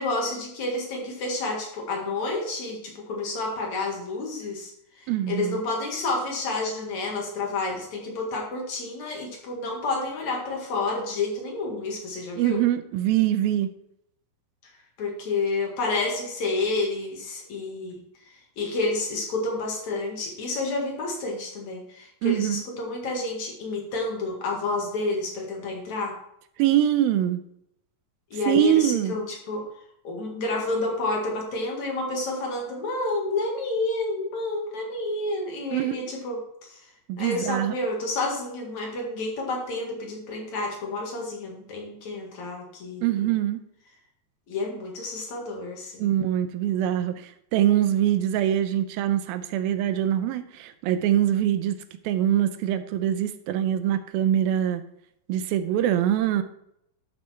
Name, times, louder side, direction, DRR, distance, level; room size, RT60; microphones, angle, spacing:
voice 1, 0.0-4.7 5.0-12.6 14.6-14.7 15.0-26.2 28.3-29.6 30.0-36.8 37.2-43.4 44.5-46.1, left 2 dB, 55° left, 0 dB, 3.0 m, -30 dB
voice 2, 5.1-5.6 12.4-13.7 22.2-22.6 26.6-27.4 28.5-29.2 35.7-35.9 37.1-37.7 43.0-43.6 46.0-51.8 52.0-54.8 55.3-56.4, right 11 dB, 85° right, 11 dB, 2.6 m, -23 dB
12.0 x 6.6 x 4.4 m, 0.76 s
omnidirectional pair, 4.1 m